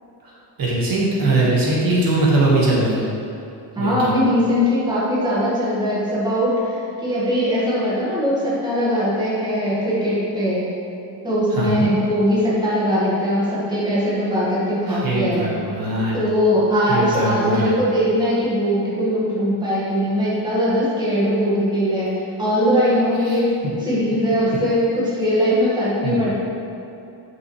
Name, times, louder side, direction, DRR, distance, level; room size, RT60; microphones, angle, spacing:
voice 1, 0.6-3.0 3.8-4.1 11.5-11.9 14.9-16.2 16.9-17.7 23.2-23.4 26.0-26.2, right 2 dB, 55° right, -5 dB, 1.7 m, -21 dB
voice 2, 3.7-10.7 11.2-15.5 16.1-22.1 22.4-23.5 23.8-26.3, equal, 10° right, -9 dB, 1.6 m, -20 dB
8.8 x 6.3 x 3.2 m, 2.8 s
cardioid pair, 175°, 42 cm